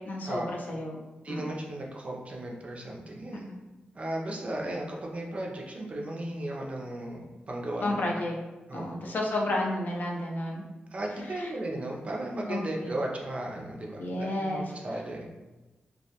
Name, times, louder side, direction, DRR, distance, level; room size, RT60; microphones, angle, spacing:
voice 1, 0.1-1.0 1.3-1.4 7.8-8.3 8.7-10.6 11.3-11.5 12.5-12.6 14.0-14.6, left 1 dB, 60° left, -1 dB, 0.4 m, -31 dB
voice 2, 1.2-3.5 3.9-8.0 8.7-9.0 10.9-15.3, right 1 dB, 40° right, -1 dB, 0.4 m, -35 dB
2.2 x 2.1 x 2.7 m, 1.1 s
wide cardioid pair, 120°, 3 cm